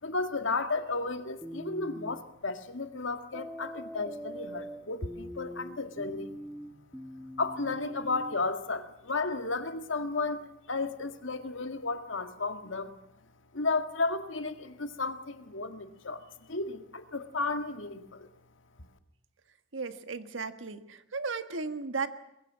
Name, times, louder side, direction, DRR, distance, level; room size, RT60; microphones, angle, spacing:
voice 1, 0.0-6.4 7.4-13.0 13.5-18.3, left 3 dB, 85° left, 8 dB, 1.9 m, -33 dB
sound 1, 1.4-2.2 3.3-8.4, equal, ahead, 1.2 m, -42 dB
voice 2, 19.7-22.1, right 4 dB, 80° right, 10 dB, 1.6 m, -35 dB
22.5 x 22.0 x 7.5 m, 0.86 s
head